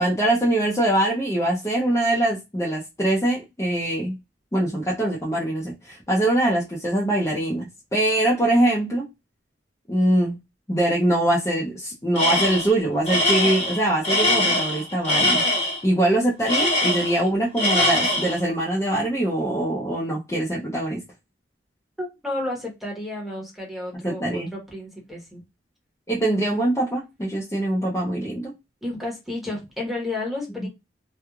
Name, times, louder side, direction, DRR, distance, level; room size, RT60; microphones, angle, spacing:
voice 1, 0.0-4.2 4.5-9.0 9.9-10.4 10.7-15.4 15.8-21.0 24.0-24.5 26.1-28.5 30.6-30.7, right 1 dB, 15° left, -5 dB, 0.6 m, -23 dB
Tools, 12.2-12.7 13.1-15.8 16.5-17.3 17.6-18.4, left 1 dB, 40° left, 1.1 m, -22 dB
voice 2, 22.0-25.4 28.8-30.7, left 2 dB, ahead, -2 dB, 1.0 m, -31 dB
3.0 x 2.3 x 2.3 m, 0.23 s
head